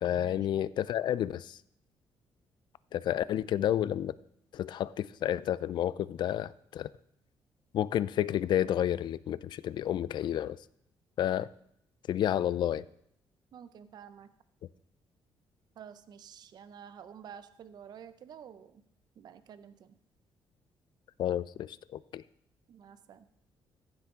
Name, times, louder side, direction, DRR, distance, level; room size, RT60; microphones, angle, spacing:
voice 1, 0.0-1.6 2.9-4.1 4.5-6.9 7.7-10.6 11.2-11.5 12.1-12.8 21.2-22.2, left 11 dB, 55° left, 18 dB, 0.4 m, -30 dB
voice 2, 13.5-14.3 15.8-18.8 19.2-20.0 22.7-23.3, right 8 dB, 50° right, 12 dB, 0.6 m, -50 dB
15.0 x 7.9 x 3.7 m, 0.72 s
cardioid pair, 145°, 9 cm